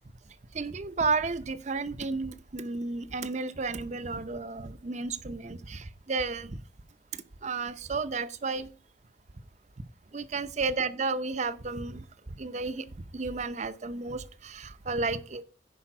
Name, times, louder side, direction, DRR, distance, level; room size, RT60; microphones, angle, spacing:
voice 1, 0.5-6.6 7.1-8.7 10.1-12.0 12.4-12.9 13.1-15.4, right 4 dB, 40° right, 0.6 m, -32 dB
10.5 x 5.0 x 5.7 m
head